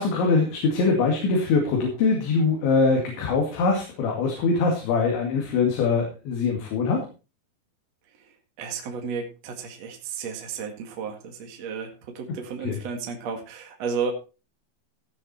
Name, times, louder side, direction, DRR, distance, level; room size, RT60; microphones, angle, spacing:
voice 1, 0.0-7.1 12.6-12.8, left 4 dB, 75° left, 0 dB, 4.6 m, -23 dB
voice 2, 8.6-14.1, right 6 dB, 50° right, 3 dB, 2.2 m, -33 dB
16.5 x 7.3 x 4.3 m, 0.32 s
omnidirectional pair, 5.4 m